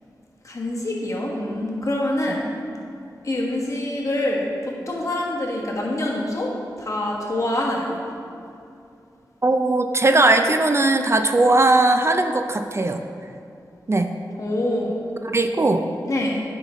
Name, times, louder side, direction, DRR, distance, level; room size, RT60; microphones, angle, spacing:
voice 1, 0.4-2.5 3.2-6.5 6.8-8.0 14.4-15.0 16.1-16.4, left 1 dB, 45° left, -3 dB, 1.4 m, -25 dB
voice 2, 9.4-13.0 13.9-14.1 15.2-15.8, right 2 dB, 35° right, 6 dB, 0.4 m, -19 dB
8.8 x 5.7 x 3.0 m, 2.5 s
cardioid pair, 50°, 7 cm